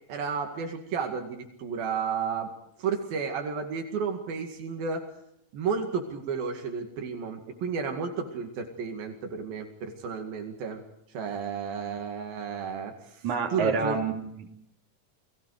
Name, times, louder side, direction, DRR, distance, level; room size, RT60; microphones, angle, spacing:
voice 1, 0.1-2.5 2.8-5.1 5.5-10.8 11.1-13.2 13.5-14.0, right 6 dB, 85° right, 3 dB, 4.0 m, -32 dB
voice 2, 13.2-14.5, right 5 dB, 55° right, 1 dB, 4.5 m, -28 dB
30.0 x 20.5 x 4.9 m, 0.77 s
omnidirectional pair, 4.1 m